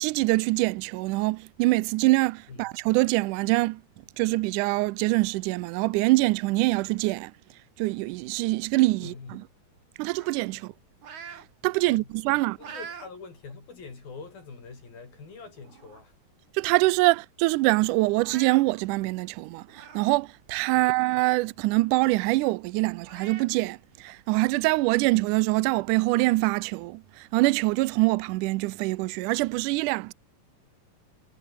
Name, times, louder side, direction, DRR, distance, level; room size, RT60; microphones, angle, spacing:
voice 1, 0.0-3.8 4.2-7.3 7.8-9.4 10.0-10.7 11.3-12.6 16.5-30.1, right 21 dB, 85° right, 1.8 m, -24 dB
voice 2, 9.0-9.4 11.9-12.1 12.6-16.1 20.7-20.9, left 4 dB, 75° left, 8.1 m, -44 dB
sound 1, 10.2-11.5 11.9-13.1 13.6-13.7 14.6-14.7 15.1-15.3 15.6-16.2 16.5-16.6 16.9-17.0 18.1-18.6 19.7-20.1 20.6-20.7 22.3-22.4 23.0-23.5, right 7 dB, 55° right, 4.1 m, -44 dB
omnidirectional pair, 4.2 m